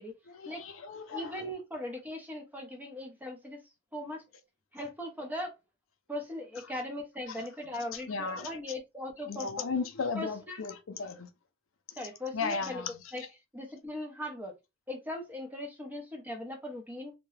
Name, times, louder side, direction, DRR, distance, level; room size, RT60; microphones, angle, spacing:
voice 1, 0.3-1.4 7.3-7.4 7.9-8.6 9.3-11.3 11.9-12.1 12.3-13.3, left 4 dB, 70° left, 0.5 m, -36 dB
voice 2, 1.1-3.6 3.9-4.2 4.7-5.5 6.1-9.5 10.2-10.6 12.0-12.8 13.1-13.2 13.5-14.5 14.9-17.1, left 1 dB, 10° right, 0.7 m, -39 dB
2.8 x 2.2 x 3.1 m
head